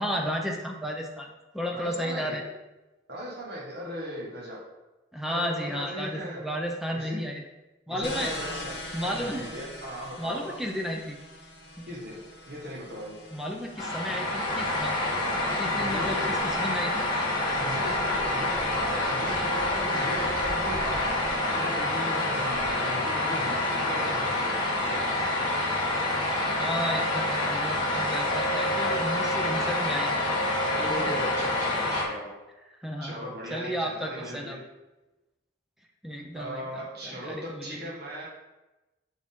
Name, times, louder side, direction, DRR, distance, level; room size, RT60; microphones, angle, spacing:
voice 1, 0.0-2.4 5.1-7.4 7.9-8.3 8.9-9.5 10.2-11.2 11.8-11.9 13.3-15.0 15.6-17.1 26.6-30.2 30.8-31.2 32.8-33.2 33.5-34.6 36.0-37.8, equal, ahead, 1 dB, 0.5 m, -33 dB
voice 2, 1.7-2.4 3.1-4.6 5.2-6.4 6.9-7.2 7.9-10.5 11.9-12.2 12.5-13.2 15.7-16.3 17.6-25.0 30.7-32.3 33.0-34.6 36.3-38.3, equal, 55° right, -5 dB, 1.5 m, -38 dB
sound 1, 8.0-16.4, left 1 dB, 55° left, 1.2 m, -42 dB
sound 2, 13.8-32.1, left 1 dB, 20° left, 1.3 m, -27 dB
5.9 x 4.5 x 3.6 m, 1.0 s
head